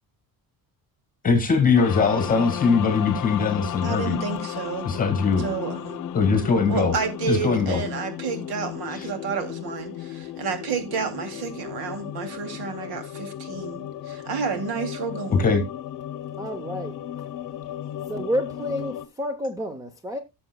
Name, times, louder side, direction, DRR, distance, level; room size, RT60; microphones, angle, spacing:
voice 1, 1.2-4.2 4.9-5.4 6.1-7.0 7.3-7.8 15.4-15.6, left 5 dB, 20° left, 1.9 m, -21 dB
sound 1, 1.8-19.1, left 11 dB, 55° left, 0.9 m, -34 dB
voice 2, 3.8-4.9 5.4-6.0 6.7-15.5, right 6 dB, 75° right, 2.7 m, -30 dB
voice 3, 16.4-16.9 18.1-20.2, equal, 10° right, 0.6 m, -29 dB
16.5 x 7.0 x 2.2 m
cardioid pair, 175°, 38 cm